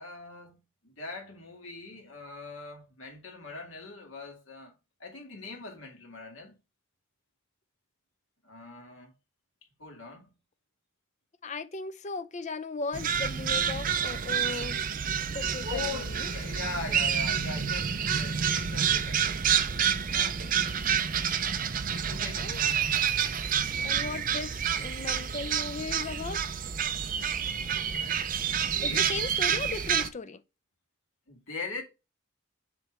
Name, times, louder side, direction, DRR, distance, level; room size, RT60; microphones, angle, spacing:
voice 1, 0.0-6.6 8.4-9.1 9.8-10.3 15.6-19.6 20.1-20.5 21.9-22.9 23.7-24.0 28.6-29.1 31.3-31.8, left 3 dB, 70° left, 2.2 m, -41 dB
voice 2, 11.4-14.9 15.3-16.3 22.4-22.7 23.8-26.6 28.8-30.4, left 3 dB, 35° left, 0.5 m, -37 dB
sound 1, 12.9-30.1, right 8 dB, 40° right, 0.5 m, -28 dB
7.2 x 3.3 x 4.8 m
head